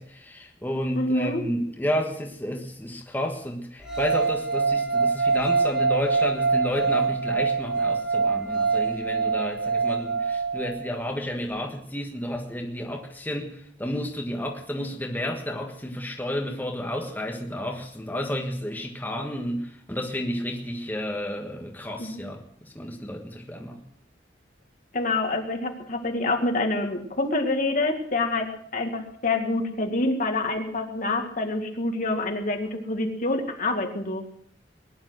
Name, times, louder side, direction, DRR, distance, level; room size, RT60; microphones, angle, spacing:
voice 1, 0.0-23.8, left 1 dB, 10° left, 1 dB, 1.5 m, -31 dB
voice 2, 1.0-1.4 22.0-22.2 24.9-34.3, left 2 dB, 50° left, 4 dB, 2.1 m, -27 dB
sound 1, 3.8-11.0, right 4 dB, 5° right, 2.4 m, -24 dB
20.0 x 10.5 x 6.3 m, 0.66 s
head